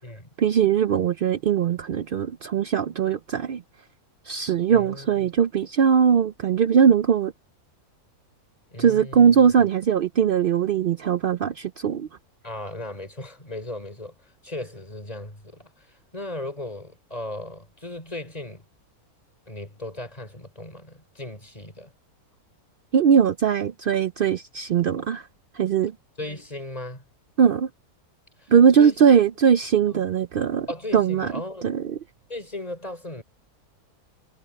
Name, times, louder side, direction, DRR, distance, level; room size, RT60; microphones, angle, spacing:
voice 1, 0.4-3.6 4.3-7.3 8.8-12.1 22.9-25.2 25.5-25.9 27.4-27.7 28.5-30.7 30.9-31.3 31.6-32.0, right 7 dB, 75° right, 0.5 m, -20 dB
voice 2, 4.7-5.3 8.7-9.4 12.4-15.9 16.1-18.6 19.5-21.9 26.2-27.0 28.4-29.1 29.9-30.0 30.7-31.7 32.3-33.2, left 1 dB, 25° left, 5.1 m, -37 dB
omnidirectional pair, 1.6 m